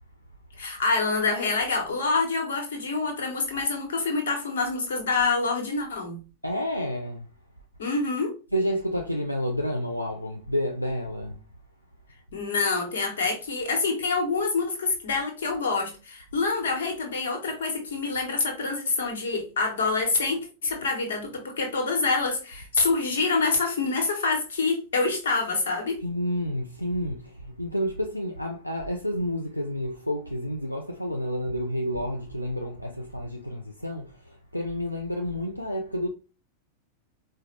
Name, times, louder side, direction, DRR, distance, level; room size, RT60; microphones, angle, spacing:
voice 1, 0.6-6.2 7.8-8.3 12.3-26.0, left 4 dB, 65° left, 1.2 m, -26 dB
voice 2, 6.4-7.3 8.5-11.4 26.0-36.1, equal, 90° left, 0.4 m, -30 dB
4.8 x 2.3 x 3.1 m
figure-of-eight pair, 90°, 0 cm